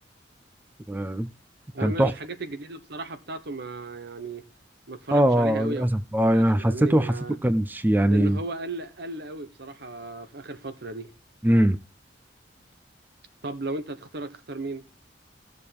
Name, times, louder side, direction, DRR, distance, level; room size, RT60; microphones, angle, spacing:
voice 1, 0.9-1.3 1.8-2.1 5.1-7.1 7.4-8.4 11.4-11.8, right 1 dB, 10° right, 0.5 m, -21 dB
voice 2, 1.7-4.4 4.9-5.8 6.3-7.4 8.1-11.1 13.4-14.8, right 2 dB, 65° right, 1.2 m, -35 dB
15.5 x 6.6 x 3.5 m
head